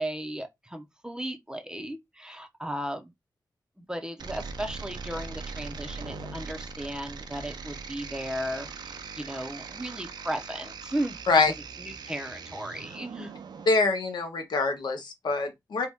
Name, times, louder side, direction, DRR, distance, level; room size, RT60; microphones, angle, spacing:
voice 1, 0.0-3.1 3.9-11.2 11.8-13.3, right 1 dB, 10° right, 0.5 m, -35 dB
sound 1, 4.2-13.7, right 4 dB, 75° right, 0.4 m, -40 dB
voice 2, 13.7-15.9, left 3 dB, 80° left, 0.7 m, -24 dB
2.7 x 2.1 x 3.4 m
wide cardioid pair, 90°, 7 cm